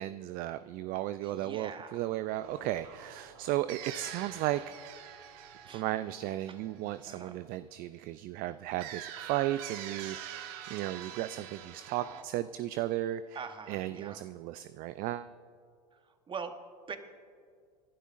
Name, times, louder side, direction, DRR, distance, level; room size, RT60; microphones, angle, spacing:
voice 1, 0.0-4.9 5.7-13.4 13.7-15.3, right 14 dB, 45° right, 13 dB, 0.4 m, -35 dB
voice 2, 1.2-2.0 5.6-5.8 7.0-7.4 13.3-14.2 16.3-16.6 16.9-17.0, right 6 dB, 25° right, 8 dB, 1.2 m, -42 dB
sound 1, 2.4-7.2 8.8-12.2, right 10 dB, 60° right, 1.5 m, -45 dB
28.5 x 11.5 x 2.6 m, 2.1 s
hypercardioid pair, 90°, 21 cm